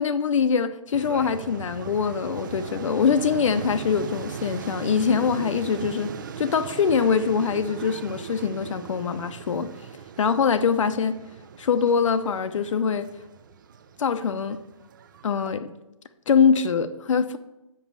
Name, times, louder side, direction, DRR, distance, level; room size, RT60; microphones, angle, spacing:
voice 1, 0.0-6.1 6.4-9.7 10.2-11.2 11.6-13.1 14.0-14.6 15.2-15.7 16.3-17.4, left 6 dB, 65° left, 9 dB, 0.6 m, -23 dB
sound 1, 0.9-15.6, right 7 dB, 35° right, 0.4 m, -39 dB
7.3 x 5.4 x 7.2 m, 0.93 s
hypercardioid pair, 160°, 17 cm